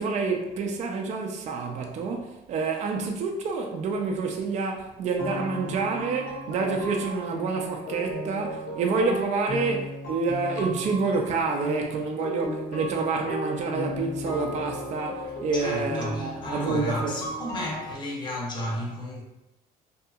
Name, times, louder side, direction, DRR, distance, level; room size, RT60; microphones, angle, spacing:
voice 1, 0.0-17.2, right 4 dB, 45° right, 0.4 m, -28 dB
sound 1, 5.2-17.9, equal, 80° left, 0.7 m, -35 dB
voice 2, 15.2-19.2, left 1 dB, 25° left, 0.7 m, -33 dB
2.7 x 2.6 x 2.3 m
cardioid pair, 110°, 17 cm